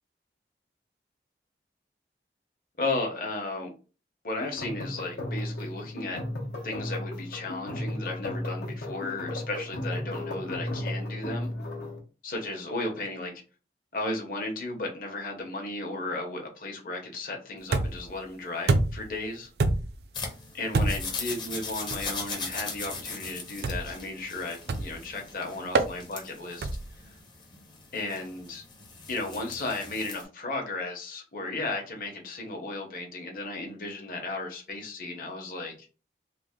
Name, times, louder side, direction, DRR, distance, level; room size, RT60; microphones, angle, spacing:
voice 1, 2.8-3.7 4.2-6.2 6.6-11.5 12.2-13.4 13.9-19.5 20.5-26.7 27.9-28.6 29.1-35.7, left 2 dB, 50° left, 1 dB, 0.9 m, -34 dB
sound 1, 4.4-12.0, left 1 dB, 80° left, 0.9 m, -35 dB
sound 2, 17.7-18.1 18.7-19.1 19.6-20.0 20.7-21.2 21.9-22.1 23.6-24.0 24.7-25.0 25.7-25.9 26.6-27.0, right 2 dB, 65° right, 0.4 m, -26 dB
sound 3, 20.1-30.2, left 4 dB, 25° left, 0.6 m, -39 dB
3.3 x 2.1 x 3.6 m, 0.35 s
head